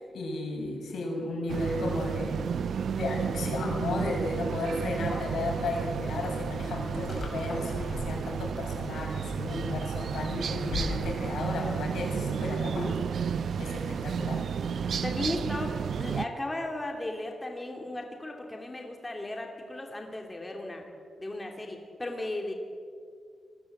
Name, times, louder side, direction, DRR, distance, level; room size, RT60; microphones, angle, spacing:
voice 1, 0.0-2.5 2.9-13.0 13.6-14.4, left 2 dB, 85° left, 1 dB, 7.1 m, -34 dB
sound 1, 1.5-16.3, right 7 dB, 65° right, 0.7 m, -32 dB
sound 2, 6.4-12.8, left 3 dB, 50° left, 4.9 m, -41 dB
voice 2, 12.6-13.0 15.0-20.8 21.2-22.5, left 1 dB, 15° left, 2 dB, 2.7 m, -36 dB
27.0 x 19.5 x 7.9 m, 2.1 s
wide cardioid pair, 165°, 0 cm